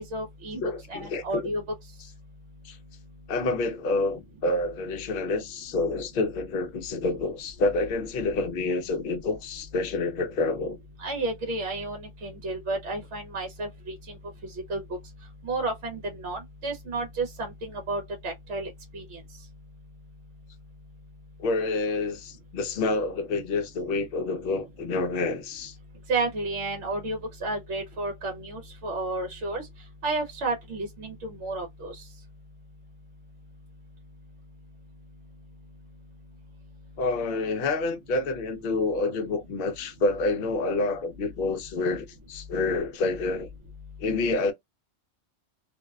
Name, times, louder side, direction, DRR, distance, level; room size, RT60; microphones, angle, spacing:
voice 1, 0.0-1.6 11.0-14.1 14.4-14.8 15.4-19.2 26.1-29.7 30.0-32.0, right 2 dB, 65° right, 1.0 m, -32 dB
voice 2, 0.5-1.4 2.6-2.8 3.3-10.8 21.4-25.7 37.0-43.5 44.0-44.5, left 3 dB, 55° left, 0.7 m, -28 dB
2.6 x 2.1 x 2.3 m
omnidirectional pair, 1.4 m